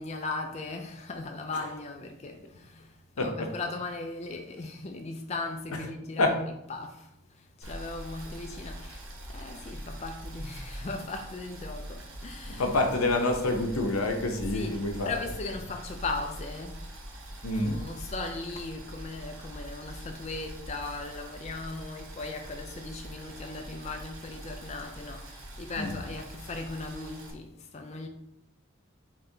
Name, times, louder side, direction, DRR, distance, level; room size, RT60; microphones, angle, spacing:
voice 1, 0.0-12.7 14.5-16.8 17.6-28.1, left 3 dB, 30° left, 0.4 m, -38 dB
Boiling, 7.6-27.3, right 1 dB, 65° right, 1.0 m, -43 dB
voice 2, 12.5-15.1 17.4-17.8 25.8-25.9, left 2 dB, 85° left, 0.7 m, -27 dB
4.4 x 3.1 x 3.8 m
head